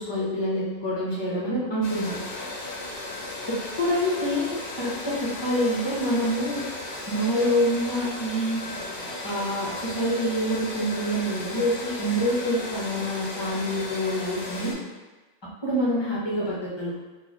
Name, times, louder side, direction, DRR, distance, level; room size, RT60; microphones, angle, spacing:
voice 1, 0.0-2.2 3.5-6.6 7.1-8.6 9.2-14.7 15.6-17.0, equal, 25° left, -6 dB, 0.6 m, -26 dB
sound 1, 1.8-14.7, left 2 dB, 55° left, 0.8 m, -35 dB
3.2 x 2.5 x 4.0 m, 1.2 s
omnidirectional pair, 1.6 m